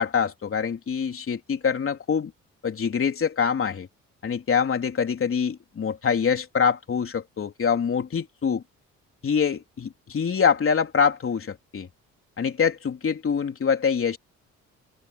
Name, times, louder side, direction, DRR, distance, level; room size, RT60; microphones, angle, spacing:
voice 1, 0.0-2.3 2.6-3.9 4.2-8.6 9.2-11.9 12.4-14.2, left 6 dB, 45° left, 3.5 m, -25 dB
open air
cardioid pair, 90°, 30 cm